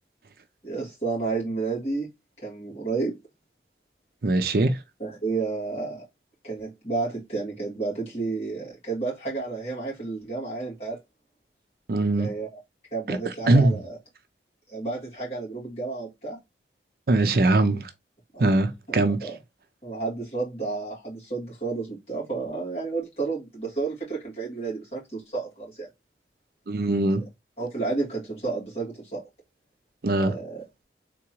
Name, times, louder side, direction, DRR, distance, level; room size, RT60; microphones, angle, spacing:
voice 1, 0.6-2.1 2.4-3.2 5.0-6.0 6.4-11.0 12.2-12.5 12.9-14.0 14.7-16.4 18.3-18.4 19.2-19.4 19.8-25.9 27.6-29.2 30.2-30.6, right 3 dB, 35° left, 2.6 m, -31 dB
voice 2, 4.2-4.8 11.9-12.3 13.1-13.2 13.5-13.8 17.1-17.9 18.4-19.3 26.7-27.2 30.0-30.4, right 2 dB, 55° right, 0.5 m, -21 dB
3.8 x 3.6 x 3.0 m
head